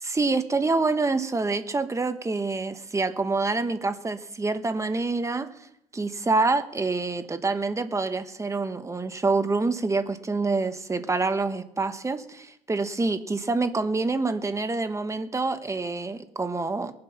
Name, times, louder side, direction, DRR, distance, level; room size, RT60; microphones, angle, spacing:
voice 1, 0.0-5.5 5.9-16.9, right 3 dB, 15° right, 9 dB, 1.3 m, -26 dB
22.0 x 7.8 x 5.9 m, 0.76 s
cardioid pair, 110°, 17 cm